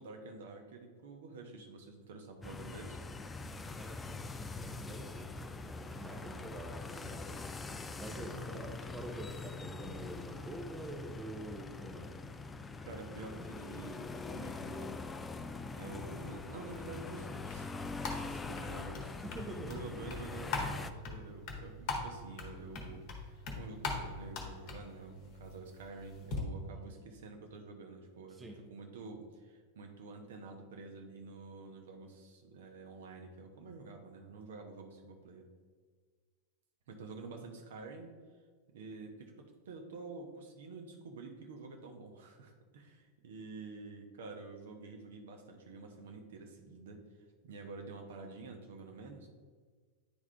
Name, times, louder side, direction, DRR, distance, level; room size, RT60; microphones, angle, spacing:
voice 1, 0.0-3.0 8.3-8.8 12.8-15.0 15.7-17.7 18.2-19.1 19.5-35.5 36.9-38.1 38.7-47.0 47.4-49.3, right 3 dB, 60° right, 3 dB, 0.9 m, -49 dB
sound 1, 2.4-20.9, left 3 dB, 15° left, 0.3 m, -43 dB
voice 2, 3.7-12.2 19.0-19.8 26.7-27.0 28.3-28.6, right 1 dB, 15° right, 3 dB, 0.7 m, -47 dB
sound 2, 16.7-26.4, left 3 dB, 40° left, 1.2 m, -42 dB
9.7 x 3.6 x 3.3 m, 1.5 s
figure-of-eight pair, 90°, 0 cm